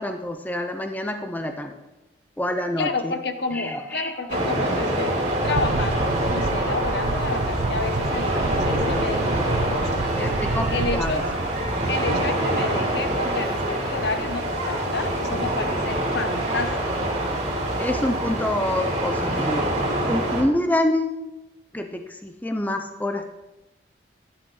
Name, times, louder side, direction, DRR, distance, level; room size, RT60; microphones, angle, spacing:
voice 1, 0.0-1.8 2.4-3.1 3.5-4.1 4.4-4.5 10.2-11.3 17.8-19.7 20.1-21.2 21.7-23.3, left 1 dB, 10° left, 6 dB, 0.6 m, -27 dB
voice 2, 2.8-5.2 5.4-10.3 10.7-11.3 11.9-17.1, left 3 dB, 65° left, 8 dB, 0.9 m, -30 dB
sound 1, 4.3-20.4, right 1 dB, 40° right, 3.0 m, -25 dB
sound 2, 5.4-12.0, right 3 dB, 55° right, 0.4 m, -29 dB
12.0 x 10.5 x 3.9 m, 1.0 s
head